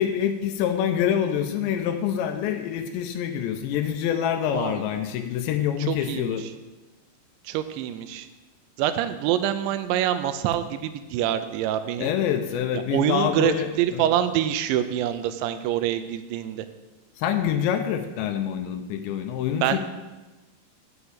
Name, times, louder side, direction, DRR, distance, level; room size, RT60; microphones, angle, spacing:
voice 1, 0.0-6.4 12.0-14.1 17.2-19.8, left 9 dB, 80° left, 7 dB, 2.9 m, -26 dB
voice 2, 5.9-6.5 7.4-8.3 8.8-12.1 12.9-16.7 19.6-19.8, right 11 dB, 90° right, 10 dB, 2.9 m, -25 dB
8.2 x 5.8 x 7.9 m, 1.1 s
omnidirectional pair, 5.2 m